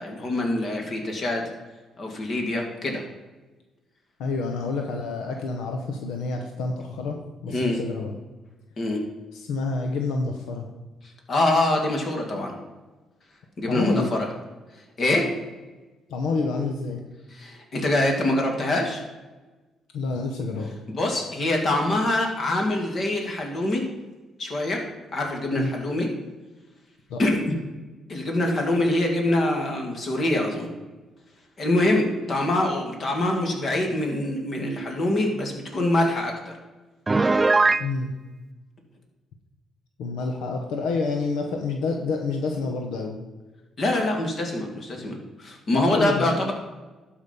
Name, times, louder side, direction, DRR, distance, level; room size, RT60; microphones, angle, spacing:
voice 1, 0.0-1.5 2.0-3.0 7.5-7.8 8.8-9.0 11.3-12.5 13.6-14.3 15.0-15.3 17.4-19.0 20.9-23.8 24.4-24.8 25.1-26.1 27.2-27.5 28.1-30.7 31.6-36.5 43.8-46.5, left 1 dB, 50° left, 2 dB, 2.5 m, -24 dB
voice 2, 4.2-8.1 9.3-10.7 13.7-14.1 16.1-17.0 19.9-20.8 25.6-25.7 27.1-27.2 37.8-38.1 40.0-43.2 45.7-46.5, left 3 dB, 90° left, 3 dB, 1.0 m, -28 dB
Piano, 37.1-37.9, right 3 dB, 25° right, 0.4 m, -19 dB
12.0 x 5.0 x 5.4 m, 1.2 s
cardioid pair, 90°, 0 cm